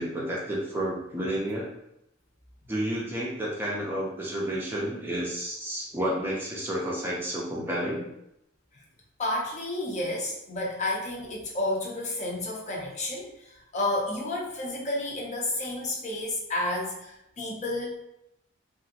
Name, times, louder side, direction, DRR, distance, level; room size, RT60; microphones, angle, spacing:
voice 1, 0.0-1.7 2.7-8.1, right 1 dB, 10° right, -5 dB, 0.5 m, -31 dB
voice 2, 9.2-18.0, left 1 dB, 35° left, -2 dB, 0.6 m, -31 dB
2.9 x 2.5 x 2.7 m, 0.82 s
head